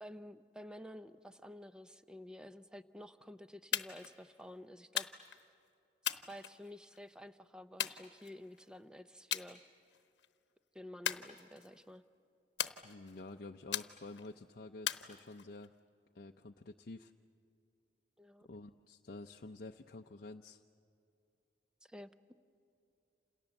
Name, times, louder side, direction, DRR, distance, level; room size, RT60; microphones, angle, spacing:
voice 1, 0.0-5.1 6.0-9.6 10.7-12.0 18.2-18.5 21.8-22.1, left 1 dB, 5° right, 11 dB, 0.7 m, -51 dB
sound 1, 3.7-4.1 5.0-5.4 6.0-7.0 7.8-8.6 9.3-9.5 9.9-10.3 11.0-11.8 12.6-13.2 13.7-14.3 14.9-15.7, left 10 dB, 90° left, 1.0 m, -39 dB
voice 2, 12.8-15.7 16.1-17.1 18.4-20.6, left 2 dB, 55° left, 3 dB, 0.6 m, -49 dB
28.5 x 28.0 x 7.1 m, 2.6 s
head